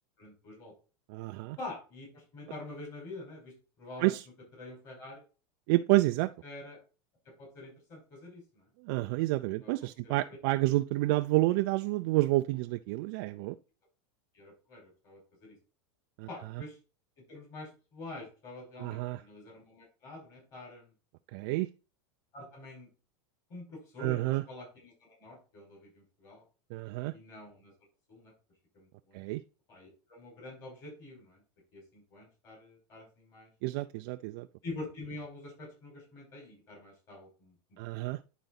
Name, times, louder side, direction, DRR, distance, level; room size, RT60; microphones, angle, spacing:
voice 1, 0.2-0.7 1.6-4.1 4.6-5.2 6.4-6.8 7.4-8.7 9.6-9.7 10.0-10.2 14.3-15.5 16.3-16.8 17.3-20.9 22.3-22.9 23.5-26.4 27.1-27.7 28.1-28.3 28.7-29.2 29.7-31.4 31.7-33.5 34.6-37.8, left 2 dB, 35° left, 4.8 m, -46 dB
voice 2, 1.1-1.6 4.0-4.2 5.7-6.3 8.8-13.6 16.2-16.3 18.8-19.2 21.3-21.7 24.0-24.4 26.7-27.1 29.1-29.4 33.6-34.5 37.8-38.2, right 19 dB, 55° right, 0.4 m, -29 dB
10.5 x 4.0 x 4.0 m
supercardioid pair, 145°, 14 cm